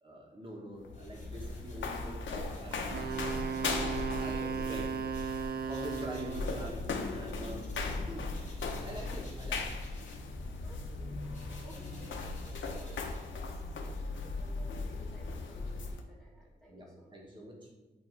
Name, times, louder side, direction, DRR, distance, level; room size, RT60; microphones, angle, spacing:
voice 1, 0.0-3.1 3.6-3.9 4.1-5.3 5.7-7.6 8.0-8.4 8.8-9.7 10.4-10.5 14.4-14.5 16.7-17.8, equal, 25° right, -1 dB, 1.4 m, -45 dB
sound 1, 0.7-16.0, left 3 dB, 85° left, 0.8 m, -38 dB
sound 2, 0.9-8.0 8.3-13.7, left 2 dB, 40° left, 1.8 m, -58 dB
Wind instrument woodwind instrument, 2.9-6.6, right 6 dB, 55° right, 0.5 m, -36 dB
voice 2, 10.6-17.4, equal, ahead, -6 dB, 1.7 m, -56 dB
8.8 x 3.1 x 4.6 m, 1.2 s
wide cardioid pair, 145°, 19 cm